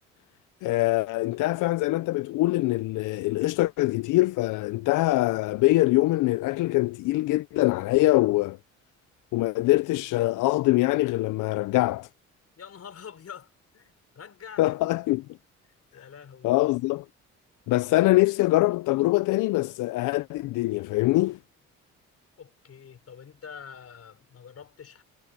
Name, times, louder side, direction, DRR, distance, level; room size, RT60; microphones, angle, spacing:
voice 1, 0.6-8.6 9.3-12.1 14.6-15.3 16.0-16.1 16.4-17.0 17.7-21.4, left 19 dB, 85° left, 0.5 m, -23 dB
voice 2, 12.6-14.7 15.9-16.6 22.4-25.0, left 7 dB, 55° left, 5.9 m, -46 dB
cardioid pair, 90°, 30 cm